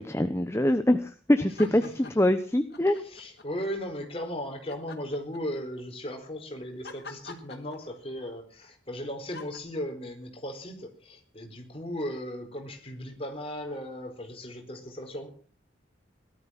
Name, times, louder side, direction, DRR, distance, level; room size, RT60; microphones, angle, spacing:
voice 1, 0.1-3.0, left 1 dB, 15° left, 9 dB, 1.0 m, -24 dB
voice 2, 1.3-2.1 3.0-15.3, equal, 30° left, 4 dB, 4.5 m, -37 dB
sound 1, 1.5-2.3 2.7-3.7 4.7-5.8 6.8-8.2 9.3-9.6, left 3 dB, 60° left, 3.5 m, -45 dB
18.0 x 13.0 x 5.9 m, 0.43 s
head